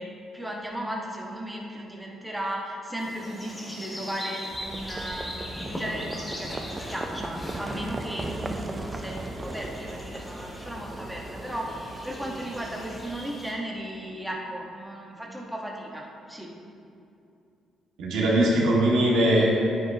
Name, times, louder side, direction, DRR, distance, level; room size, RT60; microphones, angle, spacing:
voice 1, 0.0-16.5, right 1 dB, 5° right, -2 dB, 1.3 m, -36 dB
sound 1, 3.0-13.5, left 1 dB, 20° left, 2.0 m, -40 dB
Livestock farm animals working animals, 4.5-13.2, right 2 dB, 25° right, 0.6 m, -38 dB
voice 2, 18.0-19.6, right 1 dB, 85° right, -4 dB, 2.0 m, -21 dB
9.9 x 9.3 x 2.9 m, 2.6 s
cardioid pair, 90°, 0 cm